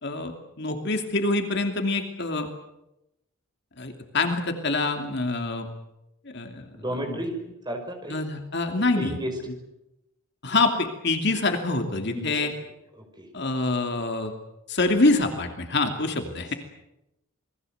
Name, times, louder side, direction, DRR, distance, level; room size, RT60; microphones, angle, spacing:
voice 1, 0.0-2.5 3.8-5.7 6.2-7.2 8.1-9.2 9.4-9.5 10.4-12.5 13.3-14.3 14.7-16.5, left 3 dB, 50° left, 5 dB, 2.8 m, -26 dB
voice 2, 6.7-7.4 7.7-8.2 8.8-9.4 12.1-12.5 13.0-13.3, equal, 20° right, 4 dB, 5.4 m, -33 dB
28.0 x 21.0 x 8.0 m, 0.89 s
head